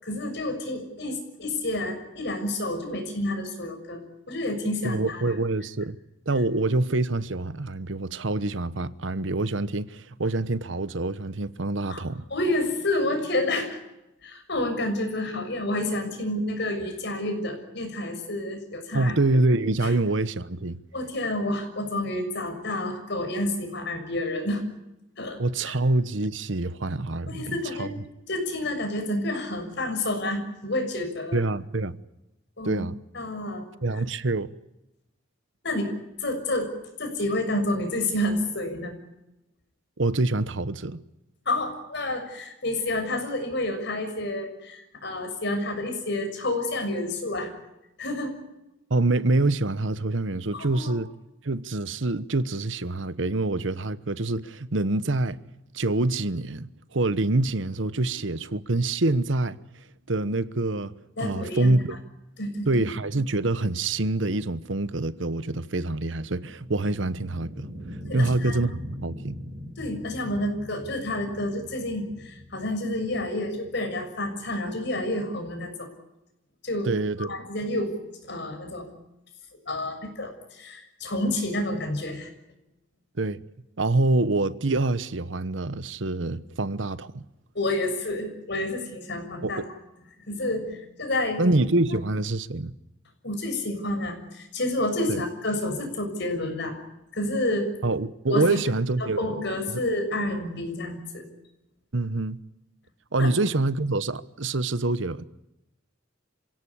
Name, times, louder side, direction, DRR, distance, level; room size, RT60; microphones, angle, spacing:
voice 1, 0.0-5.3 11.9-12.0 12.3-13.8 14.2-19.2 19.8-19.9 20.9-24.6 25.2-25.4 25.6-25.8 27.3-28.0 28.3-31.4 32.6-32.8 33.1-33.7 35.6-35.9 36.2-36.7 37.0-38.9 41.4-47.5 48.0-48.4 50.5-50.9 61.2-61.7 62.4-62.7 68.0-68.6 69.8-75.9 76.6-76.9 77.2-78.0 78.2-78.9 79.7-82.3 87.5-89.6 90.3-91.4 93.2-96.8 97.1-97.7 98.3-98.6 99.0-101.3 103.2-103.3, left 1 dB, 60° left, 6.6 m, -29 dB
voice 2, 4.8-6.0 6.3-12.2 18.9-20.8 25.4-27.9 31.3-31.9 32.6-33.0 33.8-34.5 40.0-41.0 48.9-51.1 51.4-55.4 55.7-59.6 60.1-60.9 61.2-62.0 62.7-67.7 68.1-69.4 76.8-77.3 83.2-83.4 83.8-87.2 89.4-89.7 91.4-92.7 95.1-95.2 97.8-99.3 99.7-99.8 101.9-102.4 103.1-105.2, right 2 dB, 70° right, 1.1 m, -26 dB
sound 1, 65.1-75.2, equal, 25° right, 7.5 m, -41 dB
27.0 x 17.5 x 10.0 m
head